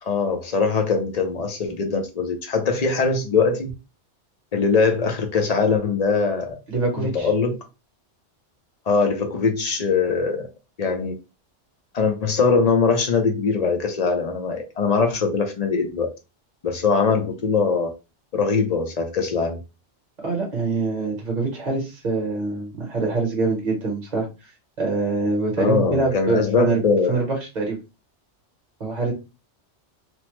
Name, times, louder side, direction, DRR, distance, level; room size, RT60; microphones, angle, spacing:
voice 1, 0.0-3.7 4.5-6.6 7.0-7.6 8.9-10.5 10.8-11.1 11.9-16.1 16.6-17.9 18.3-19.6 25.6-27.2, left 4 dB, 50° left, 0.5 m, -21 dB
voice 2, 6.7-7.3 20.2-24.5 24.8-26.8 27.1-27.3 27.5-27.8 28.8-29.1, right 3 dB, 40° right, 0.9 m, -24 dB
3.0 x 2.0 x 3.0 m
omnidirectional pair, 1.2 m